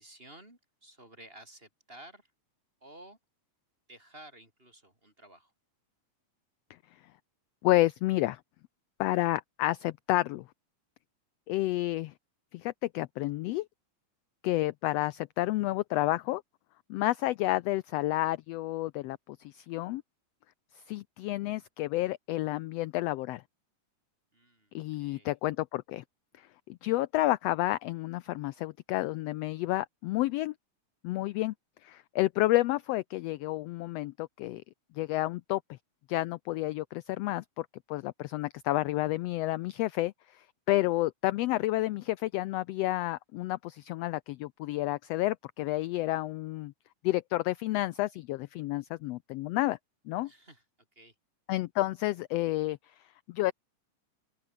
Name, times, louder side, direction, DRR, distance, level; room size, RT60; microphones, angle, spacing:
voice 1, 0.0-2.3 2.8-3.2 3.9-5.5 24.3-25.3 50.2-50.6 51.0-51.1, right 1 dB, 15° right, 5.9 m, -53 dB
voice 2, 7.6-8.4 9.0-10.4 11.5-12.1 12.5-13.7 14.4-16.4 16.9-20.0 20.9-23.4 24.7-26.0 26.4-30.5 31.0-31.5 31.8-34.6 35.0-35.6 36.1-46.7 47.0-49.8 50.1-50.3 51.5-52.8 53.3-53.5, left 17 dB, 85° left, 1.4 m, -30 dB
open air
omnidirectional pair, 3.4 m